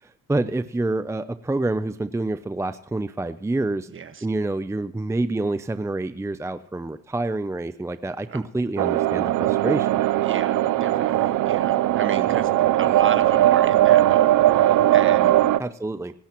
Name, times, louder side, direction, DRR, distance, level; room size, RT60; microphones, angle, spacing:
voice 1, 0.0-3.9 4.2-10.0 15.6-16.1, right 2 dB, 10° right, 12 dB, 0.6 m, -27 dB
voice 2, 3.9-4.3 8.3-8.4 10.2-15.4, right 6 dB, 40° right, 9 dB, 1.5 m, -34 dB
sound 1, 8.8-15.6, right 13 dB, 75° right, 0.7 m, -19 dB
25.5 x 12.0 x 3.0 m, 0.66 s
cardioid pair, 90°, 30 cm